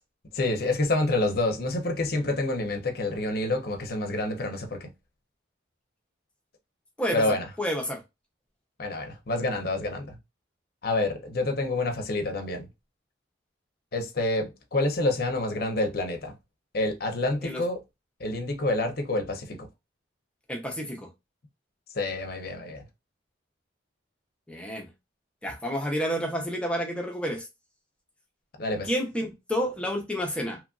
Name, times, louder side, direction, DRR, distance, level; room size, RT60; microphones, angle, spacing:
voice 1, 0.3-4.9 7.1-7.5 8.8-10.2 10.8-12.7 13.9-16.3 16.7-17.8 18.2-19.7 21.9-22.8 28.6-28.9, left 2 dB, 50° left, 0.6 m, -28 dB
voice 2, 7.0-8.0 17.4-17.6 20.5-21.1 24.5-24.9 25.4-27.4 28.8-30.6, equal, 5° left, 0.6 m, -30 dB
3.0 x 2.5 x 2.3 m
head